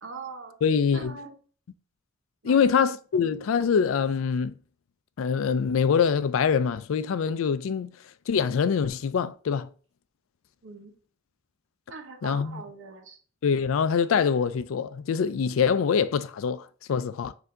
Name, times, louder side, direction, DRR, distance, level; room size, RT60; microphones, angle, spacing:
voice 1, 0.0-0.5 0.9-1.4 2.4-2.7 10.6-10.9 11.9-13.2, right 4 dB, 65° right, 0.9 m, -41 dB
voice 2, 0.6-1.2 2.4-4.6 5.2-7.9 8.3-9.7 12.2-12.6 13.4-17.3, left 6 dB, 85° left, 0.4 m, -24 dB
4.5 x 2.7 x 3.7 m
head